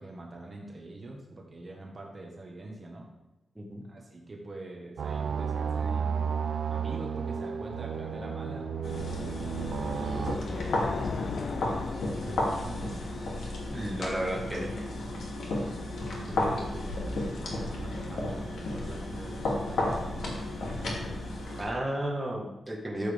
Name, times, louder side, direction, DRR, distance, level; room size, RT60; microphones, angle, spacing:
voice 1, 0.0-3.1 3.8-6.4 6.7-8.7 9.9-13.0 15.9-20.4, right 2 dB, 30° right, 0 dB, 1.5 m, -44 dB
sound 1, 5.0-10.4, right 7 dB, 70° right, 0.6 m, -32 dB
sound 2, 7.4-14.6, left 5 dB, 55° left, 0.5 m, -40 dB
sound 3, 8.8-21.6, left 2 dB, 85° left, 2.7 m, -33 dB
voice 2, 13.7-14.7 21.6-23.1, right 1 dB, 5° right, -3 dB, 1.6 m, -33 dB
13.5 x 7.7 x 3.5 m, 1.0 s
wide cardioid pair, 165°, 0 cm